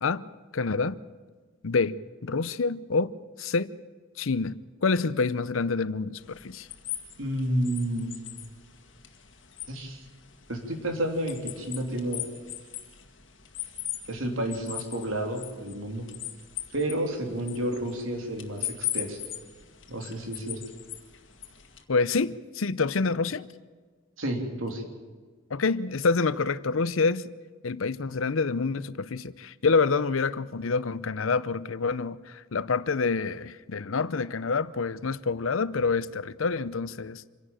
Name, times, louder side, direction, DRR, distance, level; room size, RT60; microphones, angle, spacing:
voice 1, 0.5-1.0 1.6-3.7 4.2-6.7 21.9-23.5 25.5-27.3 27.6-37.2, left 4 dB, 85° left, 0.7 m, -27 dB
sound 1, 6.2-21.8, left 13 dB, 65° left, 1.9 m, -40 dB
voice 2, 7.2-8.2 9.7-10.0 10.5-12.3 14.1-16.0 16.7-19.2 19.9-20.6 24.2-24.8, right 1 dB, 85° right, 3.4 m, -30 dB
26.5 x 11.5 x 8.9 m
head